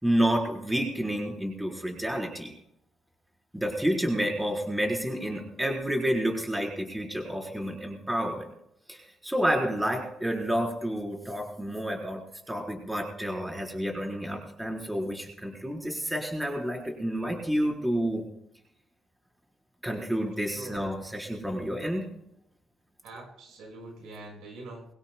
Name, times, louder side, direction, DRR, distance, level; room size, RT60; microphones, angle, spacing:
voice 1, 0.0-2.5 3.5-8.5 8.9-12.2 12.5-18.2 19.8-22.0, equal, 10° right, 0 dB, 4.3 m, -29 dB
voice 2, 23.0-24.9, right 2 dB, 90° right, 2 dB, 5.4 m, -44 dB
23.0 x 17.0 x 2.3 m, 0.77 s
cardioid pair, 95°, 0 cm